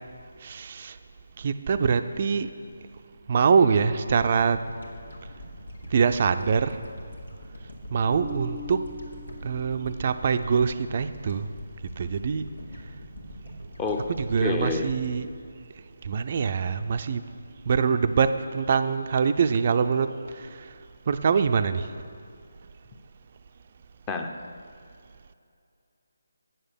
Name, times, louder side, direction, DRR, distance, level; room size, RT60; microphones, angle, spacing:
voice 1, 0.4-1.0 1.4-2.5 3.3-4.6 5.9-6.8 7.9-8.9 9.4-11.5 12.0-12.4 14.1-15.3 16.0-17.3 17.7-20.8 21.1-21.9, right 6 dB, 40° right, 10 dB, 0.4 m, -24 dB
sound 1, 4.1-16.6, equal, 85° left, 1.5 m, -44 dB
Marimba xylophone, 8.1-10.1, left 2 dB, 45° left, 1.5 m, -42 dB
voice 2, 13.8-14.1 14.4-14.9 24.1-24.3, left 3 dB, 15° left, 4 dB, 0.6 m, -28 dB
8.9 x 6.7 x 6.7 m, 2.4 s
figure-of-eight pair, 150°, 0 cm